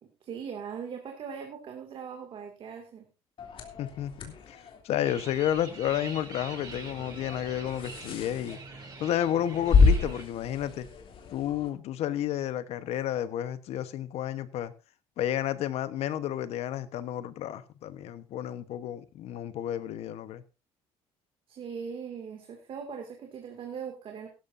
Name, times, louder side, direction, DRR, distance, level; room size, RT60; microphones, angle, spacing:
voice 1, 0.0-3.1 21.5-24.3, right 6 dB, 55° right, 2.3 m, -40 dB
sound 1, 3.4-11.7, left 4 dB, 55° left, 3.0 m, -30 dB
voice 2, 3.8-8.6 9.0-10.9 11.3-14.7 15.2-20.4, left 11 dB, 75° left, 1.1 m, -31 dB
sound 2, 5.0-10.2, right 3 dB, 40° right, 7.3 m, -44 dB
16.0 x 13.0 x 2.7 m
cardioid pair, 105°, 11 cm